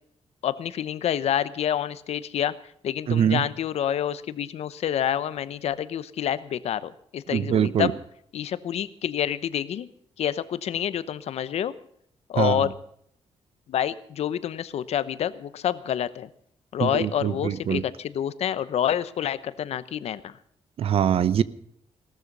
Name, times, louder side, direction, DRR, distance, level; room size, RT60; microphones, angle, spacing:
voice 1, 0.4-2.5 2.8-7.9 8.3-9.9 10.2-11.7 12.3-12.7 13.7-16.3 16.7-20.4, left 10 dB, 70° left, 0.9 m, -28 dB
voice 2, 3.1-3.5 7.3-7.9 12.4-12.7 16.8-17.8 20.8-21.4, right 9 dB, 60° right, 0.7 m, -23 dB
18.0 x 13.0 x 5.4 m
cardioid pair, 135°, 11 cm